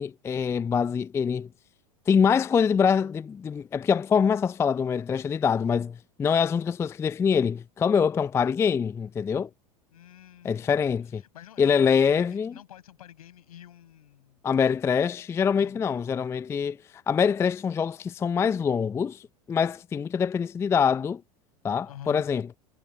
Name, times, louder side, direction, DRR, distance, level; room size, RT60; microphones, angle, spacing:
voice 1, 0.0-1.5 2.1-9.5 10.4-11.2 11.6-12.5 14.4-21.2 21.6-22.5, left 6 dB, 15° left, 0.3 m, -24 dB
voice 2, 9.9-10.7 11.1-14.4 15.5-15.8 21.9-22.2, left 11 dB, 70° left, 7.0 m, -48 dB
figure-of-eight pair, 80°, 20 cm